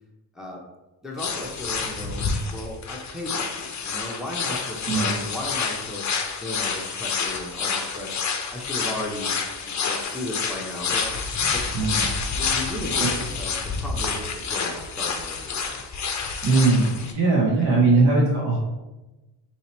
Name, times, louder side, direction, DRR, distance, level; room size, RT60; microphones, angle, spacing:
voice 1, 1.0-6.2 6.4-8.2 8.5-9.3 9.6-11.1 11.5-11.7 12.4-15.8 16.7-17.0 17.5-18.1, left 1 dB, ahead, -2 dB, 0.7 m, -36 dB
sound 1, 1.2-17.1, left 5 dB, 35° left, 0.6 m, -28 dB
voice 2, 16.4-16.9 17.1-18.6, right 3 dB, 60° right, -5 dB, 1.1 m, -19 dB
2.9 x 2.8 x 4.3 m, 1.1 s
cardioid pair, 70°, 49 cm